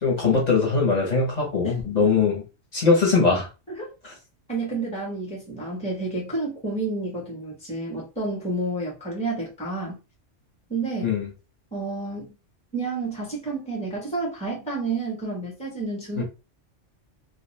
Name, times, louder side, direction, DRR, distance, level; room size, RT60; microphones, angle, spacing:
voice 1, 0.0-2.4 2.7-3.5 4.0-4.1 11.0-11.3 16.2-16.3, left 4 dB, 35° left, 1.0 m, -21 dB
voice 2, 4.5-10.0 10.7-11.1 11.7-12.3 12.7-16.2, right 3 dB, 5° left, 0.9 m, -30 dB
2.4 x 2.3 x 3.1 m
omnidirectional pair, 1.3 m